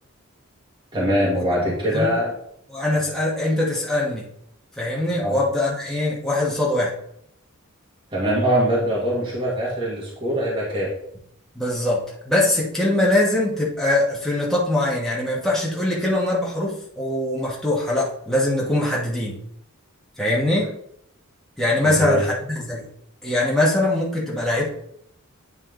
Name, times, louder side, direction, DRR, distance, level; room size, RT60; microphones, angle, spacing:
voice 1, 0.9-2.3 2.9-3.0 5.2-5.4 8.1-10.9 21.8-22.2, equal, 25° right, -5 dB, 1.7 m, -22 dB
voice 2, 1.5-2.1 2.7-4.2 4.8-6.9 11.5-19.4 20.2-20.7 21.6-22.8 23.2-24.8, left 1 dB, ahead, -5 dB, 1.3 m, -22 dB
9.2 x 4.3 x 3.8 m, 0.73 s
head